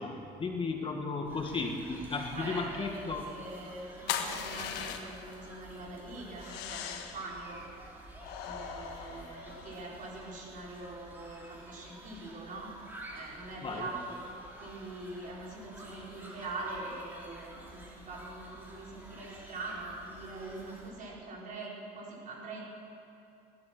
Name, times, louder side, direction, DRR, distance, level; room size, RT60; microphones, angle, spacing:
voice 1, 0.0-3.2 13.6-13.9, left 4 dB, 30° left, 3 dB, 1.7 m, -35 dB
sound 1, 1.2-20.9, right 1 dB, 10° right, 4.0 m, -51 dB
voice 2, 2.3-7.7 8.4-12.7 13.1-14.3 14.6-22.6, right 2 dB, 50° right, -3 dB, 4.7 m, -43 dB
sound 2, 4.1-5.3 6.4-7.3 8.2-9.9, left 8 dB, 90° left, 1.3 m, -39 dB
19.5 x 12.0 x 6.0 m, 2.7 s
cardioid pair, 110°, 17 cm